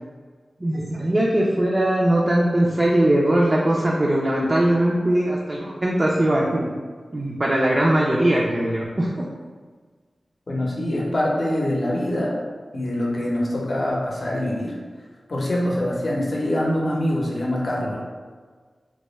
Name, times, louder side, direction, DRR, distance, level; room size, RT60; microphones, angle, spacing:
voice 1, 0.6-6.7 7.1-9.3, right 1 dB, 35° right, -3 dB, 0.3 m, -20 dB
voice 2, 10.5-12.4 12.7-14.8 15.3-18.0, left 1 dB, 55° left, -3 dB, 0.6 m, -24 dB
2.2 x 2.0 x 3.0 m, 1.5 s
cardioid pair, 60°, 0 cm